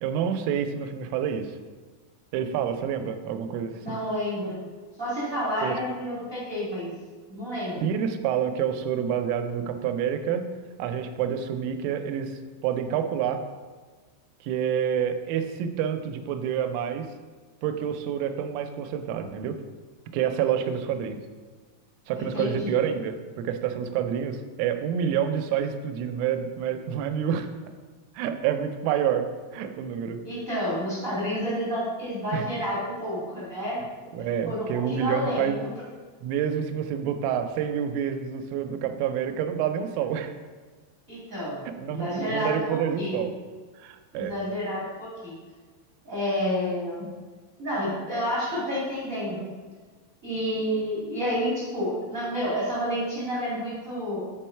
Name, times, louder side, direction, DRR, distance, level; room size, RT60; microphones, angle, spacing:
voice 1, 0.0-1.6 2.3-4.0 5.6-5.7 7.8-10.4 10.8-13.4 14.4-17.1 17.6-19.6 20.1-21.2 22.1-27.5 28.2-29.3 29.5-30.2 32.3-32.5 34.1-35.6 36.2-40.3 41.7-43.3 43.8-44.3, right 8 dB, 90° right, 7 dB, 3.2 m, -28 dB
voice 2, 3.8-4.6 5.0-6.9 7.3-7.9 22.1-22.8 30.2-33.8 34.4-35.7 41.1-43.3 44.1-45.3 46.0-47.0 47.6-49.4 50.2-54.2, equal, 60° right, -7 dB, 0.8 m, -30 dB
10.5 x 4.6 x 4.4 m, 1.4 s
omnidirectional pair, 5.5 m